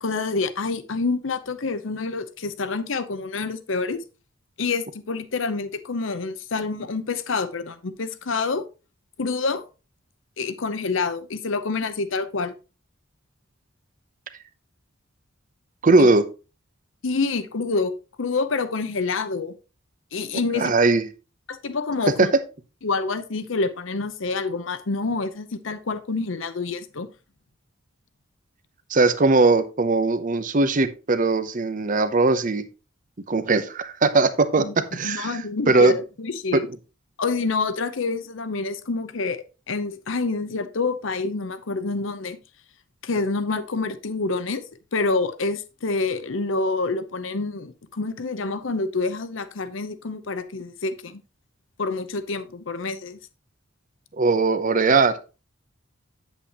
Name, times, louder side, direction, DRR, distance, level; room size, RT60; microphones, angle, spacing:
voice 1, 0.0-4.0 4.6-8.6 9.2-9.7 10.4-12.5 16.0-16.1 17.0-17.9 18.2-19.5 20.1-20.7 21.5-22.3 22.8-27.1 34.6-34.7 35.0-36.7 37.2-42.4 43.0-44.6 44.9-51.2 51.8-53.2, left 3 dB, 65° left, 0.8 m, -27 dB
voice 2, 15.8-16.2 20.6-21.0 22.2-22.3 28.9-32.7 33.3-34.6 34.9-35.4 35.7-36.0 54.2-55.1, right 3 dB, 40° right, 0.7 m, -19 dB
8.3 x 8.1 x 2.9 m
head